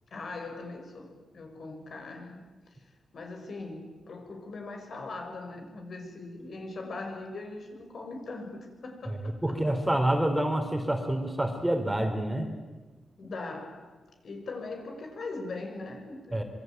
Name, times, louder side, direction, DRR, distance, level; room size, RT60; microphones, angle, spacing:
voice 1, 0.1-2.4 3.1-9.6 13.2-14.0 14.2-16.4, left 3 dB, 55° left, 4 dB, 6.2 m, -40 dB
voice 2, 9.4-12.5 16.3-16.4, right 1 dB, 10° right, 5 dB, 3.4 m, -27 dB
26.0 x 24.0 x 9.2 m, 1.3 s
wide cardioid pair, 125°, 0 cm